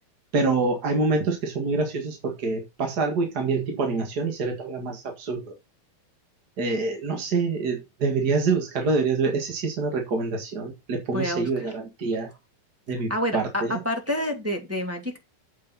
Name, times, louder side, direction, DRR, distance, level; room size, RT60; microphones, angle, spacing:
voice 1, 0.3-5.5 6.6-12.3 12.9-13.8, right 3 dB, 40° right, 3 dB, 1.5 m, -26 dB
voice 2, 11.1-11.5 13.1-15.2, left 1 dB, 5° right, 1 dB, 1.8 m, -28 dB
8.2 x 8.2 x 4.1 m, 0.23 s
omnidirectional pair, 4.3 m